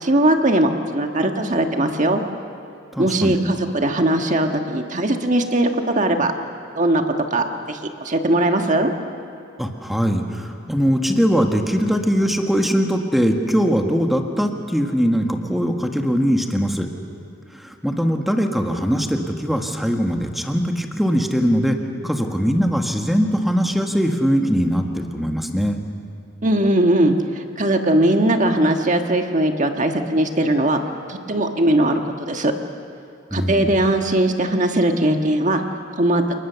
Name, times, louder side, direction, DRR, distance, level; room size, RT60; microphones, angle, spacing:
voice 1, 0.0-2.2 3.0-6.3 6.8-7.0 7.3-8.9 26.4-30.8 31.1-32.0 32.3-32.5 33.3-35.6 36.0-36.2, right 1 dB, 40° right, 5 dB, 1.5 m, -19 dB
voice 2, 2.9-3.4 9.6-16.9 17.5-25.8 33.3-33.7, equal, ahead, 3 dB, 1.6 m, -21 dB
29.0 x 20.0 x 6.9 m, 2.5 s
head